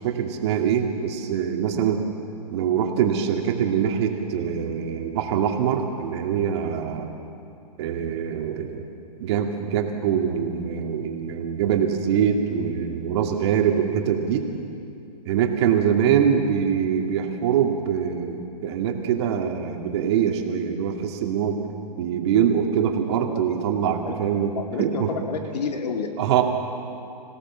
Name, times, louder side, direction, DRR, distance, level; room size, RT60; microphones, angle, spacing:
voice 1, 0.0-2.1 2.5-7.1 7.8-8.9 9.2-14.4 15.3-21.6 22.0-25.1 26.2-26.4, right 8 dB, 40° right, 2 dB, 2.4 m, -23 dB
voice 2, 24.5-26.2, left 5 dB, 75° left, 3 dB, 3.0 m, -29 dB
26.5 x 17.0 x 7.4 m, 2.6 s
hypercardioid pair, 160°, 21 cm